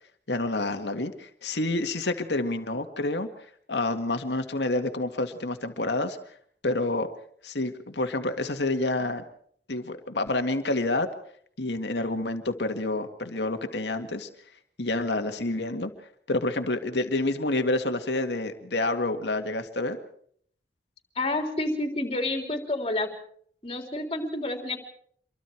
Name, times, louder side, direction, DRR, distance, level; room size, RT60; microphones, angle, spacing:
voice 1, 0.3-3.3 3.7-6.2 6.6-7.1 7.4-9.2 9.7-11.1 11.6-14.3 14.8-15.9 16.3-20.0, left 2 dB, 80° left, 7 dB, 2.0 m, -28 dB
voice 2, 21.2-23.1 23.6-24.8, left 2 dB, 30° left, 4 dB, 3.6 m, -29 dB
27.0 x 23.5 x 4.6 m, 0.62 s
head